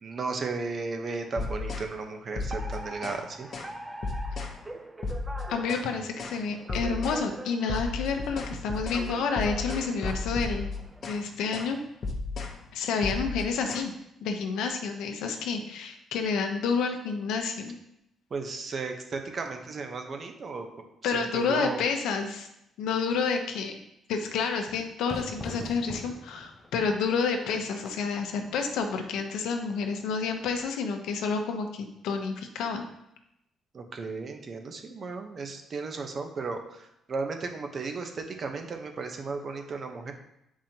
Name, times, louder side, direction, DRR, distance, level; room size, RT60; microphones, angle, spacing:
voice 1, 0.0-3.5 18.3-20.7 21.1-21.8 33.7-40.1, right 4 dB, 45° right, 5 dB, 1.0 m, -35 dB
sound 1, 1.4-1.9 2.4-3.2 3.5-3.7 4.0-4.6 5.0-5.9 6.2-6.4 6.7-7.2 7.7-11.2 11.5-11.7 12.0-12.6 13.0-13.8, left 3 dB, 50° left, 1.0 m, -34 dB
Alarm, 2.5-11.1, right 2 dB, 15° right, 0.6 m, -43 dB
voice 2, 5.5-10.7 11.0-11.8 12.7-13.9 14.2-17.8 21.0-22.5 22.8-23.8 24.1-32.9, left 5 dB, 85° left, 5 dB, 0.9 m, -29 dB
Fire / Fireworks, 25.1-30.6, left 2 dB, 25° left, 0.7 m, -44 dB
7.4 x 4.9 x 2.9 m, 0.81 s
cardioid pair, 90°, 0 cm